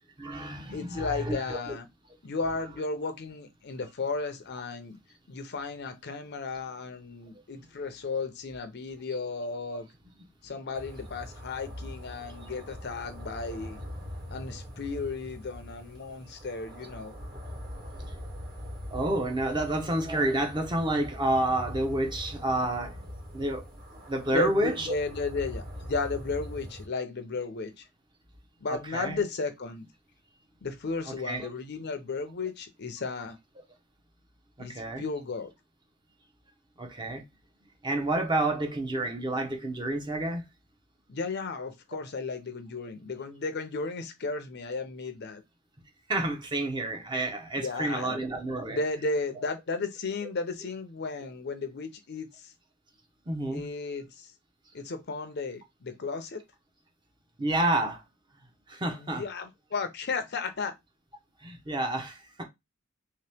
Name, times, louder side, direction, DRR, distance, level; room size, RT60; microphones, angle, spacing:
voice 1, 0.2-1.8 18.9-23.1 23.3-23.6 23.9-24.9 28.9-29.2 31.1-31.5 34.6-35.0 36.8-37.2 37.8-40.4 46.1-48.8 53.3-53.6 57.4-58.0 58.7-59.2 61.4-62.4, right 1 dB, 20° right, 0.7 m, -29 dB
voice 2, 0.7-1.9 2.2-5.0 5.3-9.9 10.4-13.8 14.3-17.1 24.3-27.8 28.6-29.9 30.6-33.4 34.6-35.5 41.1-45.4 47.6-48.2 48.7-52.5 53.5-54.3 54.7-56.4 58.9-60.7, left 4 dB, 50° left, 0.6 m, -34 dB
sound 1, 10.7-26.9, equal, 40° right, 1.3 m, -42 dB
3.1 x 2.9 x 3.3 m
head